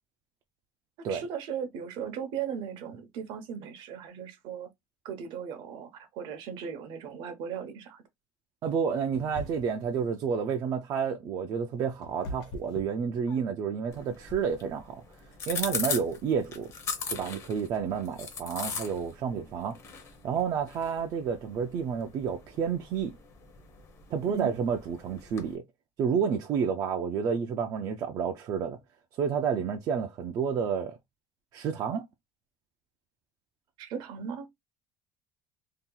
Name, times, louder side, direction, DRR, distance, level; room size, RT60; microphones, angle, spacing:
voice 1, 1.1-4.7 5.0-8.0 24.2-24.6 33.8-34.5, right 7 dB, 60° right, 0.8 m, -37 dB
voice 2, 8.6-15.0 15.5-16.7 17.1-19.8 20.2-23.1 24.1-25.6 26.0-28.8 29.2-31.0 31.5-32.0, right 6 dB, 40° right, 0.4 m, -30 dB
sound 1, 9.1-9.9 11.4-13.7, left 1 dB, 70° left, 1.2 m, -42 dB
sound 2, 13.9-25.5, left 5 dB, 30° left, 0.7 m, -40 dB
2.8 x 2.4 x 3.7 m
cardioid pair, 175°, 9 cm